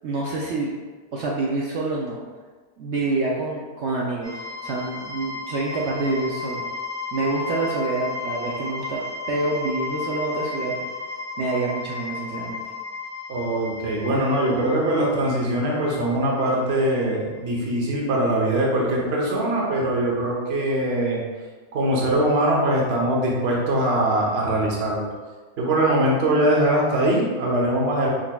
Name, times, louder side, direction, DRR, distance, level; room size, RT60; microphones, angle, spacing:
voice 1, 0.0-0.7 1.1-2.1 2.8-6.6 7.1-9.0 9.3-10.9 11.4-12.6, right 3 dB, 75° right, -3 dB, 0.6 m, -27 dB
sound 1, 4.2-18.1, left 4 dB, 20° left, 1.3 m, -34 dB
voice 2, 13.3-21.2 21.7-25.1 25.6-28.1, right 1 dB, 50° right, -3 dB, 0.9 m, -22 dB
4.7 x 4.0 x 2.2 m, 1.4 s
omnidirectional pair, 1.7 m